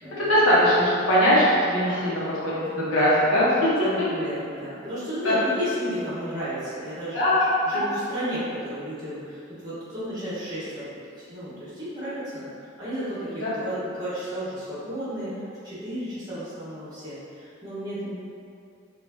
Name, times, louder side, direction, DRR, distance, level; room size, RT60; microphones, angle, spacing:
voice 1, 0.2-3.7 5.2-5.3 7.1-7.4 7.7-7.9 13.4-13.5, equal, 85° left, -9 dB, 1.2 m, -21 dB
voice 2, 3.6-7.2 7.6-10.9 11.2-18.1, equal, 20° right, -11 dB, 1.3 m, -33 dB
4.5 x 2.7 x 2.8 m, 2.5 s
head